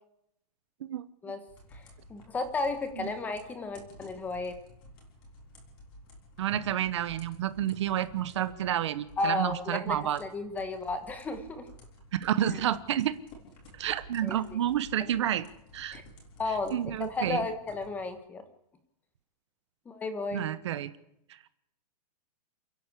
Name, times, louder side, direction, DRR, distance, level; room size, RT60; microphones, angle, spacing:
sound 1, 1.5-18.1, equal, 25° left, 6.1 m, -53 dB
voice 1, 2.1-4.5 9.2-11.7 12.5-12.6 14.2-14.4 15.0-15.1 15.9-16.0 16.4-18.4 19.8-20.4, left 3 dB, 10° left, 9 dB, 1.2 m, -33 dB
voice 2, 6.4-10.2 12.2-13.1 13.7-15.5 15.7-16.0 16.7-17.4 20.3-20.9, right 11 dB, 45° right, 14 dB, 1.1 m, -30 dB
28.5 x 11.0 x 8.4 m, 0.79 s
hypercardioid pair, 175°, 21 cm